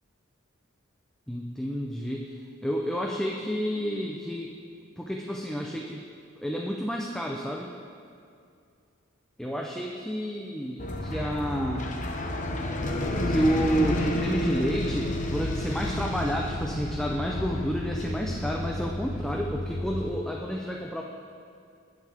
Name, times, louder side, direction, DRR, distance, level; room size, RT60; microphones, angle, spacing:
voice 1, 1.3-2.4 2.6-4.5 5.0-6.0 6.4-7.7 9.4-11.9 13.3-21.0, equal, 5° left, -1 dB, 0.5 m, -30 dB
sound 1, 10.8-20.1, left 1 dB, 40° left, 0.9 m, -31 dB
19.5 x 6.6 x 3.5 m, 2.4 s
head